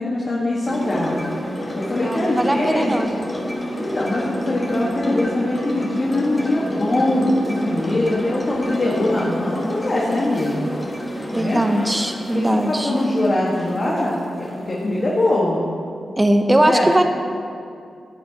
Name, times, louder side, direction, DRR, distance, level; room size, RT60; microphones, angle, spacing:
voice 1, 0.0-1.3 1.8-3.0 3.8-10.7 11.4-11.6 12.3-15.6 16.6-16.9, left 1 dB, 40° left, -5 dB, 1.6 m, -22 dB
sound 1, 0.7-15.4, left 1 dB, 20° left, 1.8 m, -30 dB
voice 2, 2.0-3.1 11.3-12.9 16.2-17.0, right 1 dB, 15° right, 5 dB, 0.8 m, -19 dB
16.0 x 9.4 x 2.9 m, 2.3 s
wide cardioid pair, 115°, 0 cm